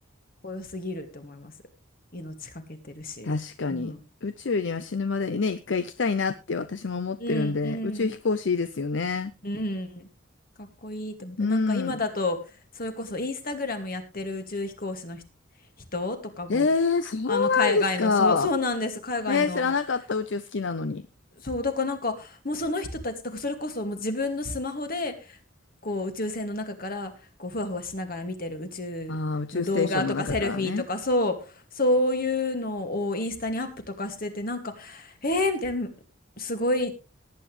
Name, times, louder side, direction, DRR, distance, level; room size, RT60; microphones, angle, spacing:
voice 1, 0.4-1.5 2.1-3.3 3.7-4.0 7.2-8.1 9.4-10.1 10.6-12.4 12.7-15.2 15.9-16.7 17.3-19.7 21.4-25.4 25.8-27.1 27.4-29.2 29.5-35.9 36.4-36.9, left 2 dB, 50° left, 7 dB, 2.2 m, -30 dB
voice 2, 3.2-3.9 4.2-9.3 11.4-12.0 16.5-18.5 19.3-21.0 29.1-30.8, left 4 dB, 65° left, 13 dB, 0.6 m, -26 dB
18.5 x 9.3 x 3.3 m, 0.30 s
head